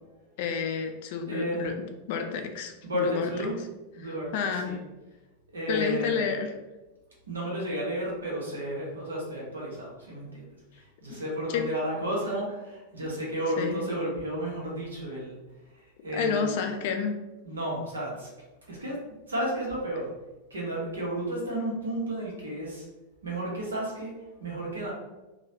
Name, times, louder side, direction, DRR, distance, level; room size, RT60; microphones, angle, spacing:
voice 1, 0.4-3.3 4.0-4.8 5.7-6.5 11.1-11.2 11.5-11.7 13.0-13.1 13.6-13.8 16.1-17.2, left 6 dB, 50° left, 5 dB, 0.4 m, -30 dB
voice 2, 1.3-1.7 2.8-3.6 4.0-4.8 5.5-6.3 7.3-10.4 10.7-15.4 16.0-16.6 17.4-18.3 18.7-19.0 19.3-20.1 20.5-22.8 23.2-24.9, right 1 dB, 70° right, -4 dB, 1.0 m, -32 dB
3.0 x 2.3 x 2.7 m, 1.1 s
figure-of-eight pair, 90°, 0 cm